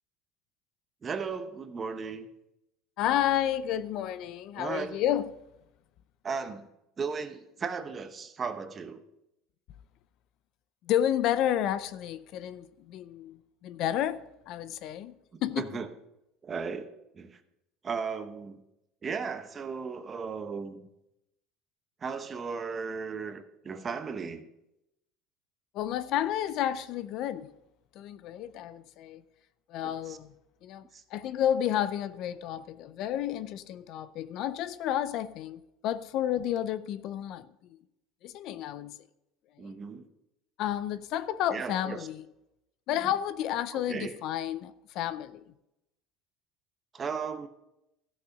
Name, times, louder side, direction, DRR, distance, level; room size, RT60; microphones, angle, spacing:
voice 1, 1.0-2.3 4.6-5.0 6.2-6.7 7.0-9.0 15.3-15.9 16.4-17.4 17.8-18.6 19.0-20.9 22.0-24.5 29.8-30.2 30.9-31.0 39.6-40.1 41.5-42.1 43.0-43.1 43.7-44.2 46.9-47.5, right 5 dB, 25° right, 0.8 m, -36 dB
voice 2, 3.0-5.3 10.8-15.7 25.7-27.5 27.9-29.2 29.7-30.3 30.6-30.8 31.1-37.8 38.2-39.1 39.6-39.7 40.6-42.2 42.9-45.5, left 11 dB, 55° left, 0.5 m, -31 dB
14.0 x 6.5 x 5.8 m
cardioid pair, 150°, 0 cm